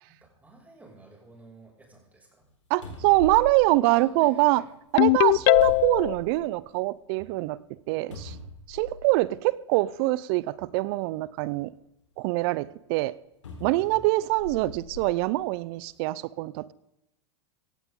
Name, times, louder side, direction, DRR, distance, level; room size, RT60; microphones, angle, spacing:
voice 1, 0.0-2.5 3.8-4.7 13.7-14.3, right 2 dB, 10° right, -1 dB, 6.7 m, -51 dB
sound 1, 2.4-2.5 2.8-4.5 5.2-6.6 7.1-7.2 8.1-9.2 10.2-10.3 13.4-15.1 15.8-15.9, left 2 dB, 90° left, 4.1 m, -41 dB
voice 2, 2.7-4.6 4.9-7.6 7.9-8.4 8.7-11.7 12.2-13.1 13.6-16.7, right 19 dB, 55° right, 20 dB, 0.7 m, -24 dB
Ringtone, 5.0-6.1, left 23 dB, 50° left, 0.4 m, -19 dB
17.5 x 15.0 x 3.8 m, 0.88 s
hypercardioid pair, 105°, 15 cm